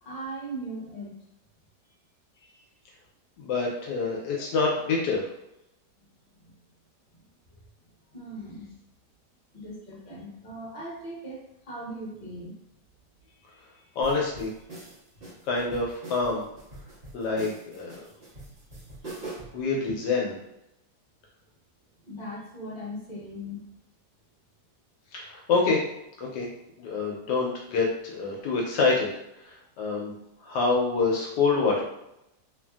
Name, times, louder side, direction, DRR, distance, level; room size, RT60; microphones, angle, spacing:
voice 1, 0.0-1.2 6.0-6.1 6.3-6.4 7.1-7.2 7.5-7.6 8.1-8.7 9.5-12.5 22.0-23.6, right 1 dB, 35° left, -6 dB, 1.1 m, -39 dB
voice 2, 3.4-5.3 14.0-14.5 15.4-16.4 17.1-18.0 19.5-20.3 25.1-25.8 26.2-26.5 26.8-29.1 29.4-30.1 30.4-31.8, left 4 dB, 80° left, -2 dB, 1.2 m, -26 dB
sound 1, 14.0-19.6, right 2 dB, 40° right, 1.0 m, -43 dB
3.1 x 2.5 x 2.3 m, 0.82 s
omnidirectional pair, 1.9 m